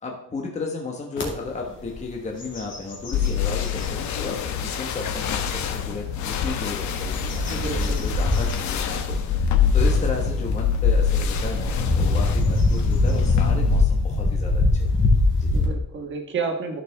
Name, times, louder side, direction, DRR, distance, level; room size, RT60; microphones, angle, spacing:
voice 1, 0.0-14.9 15.3-15.5, left 3 dB, 25° left, 0 dB, 1.3 m, -34 dB
sound 1, 1.2-1.3 1.8-2.1 2.4-3.9 4.5-4.6 6.3-15.7, left 2 dB, 40° left, 2.2 m, -23 dB
sound 2, 3.1-13.8, left 8 dB, 70° left, 1.0 m, -26 dB
voice 2, 7.4-8.0 15.5-16.8, right 5 dB, 40° right, 4 dB, 1.6 m, -30 dB
13.0 x 6.9 x 3.5 m, 0.73 s
cardioid pair, 175°, 30 cm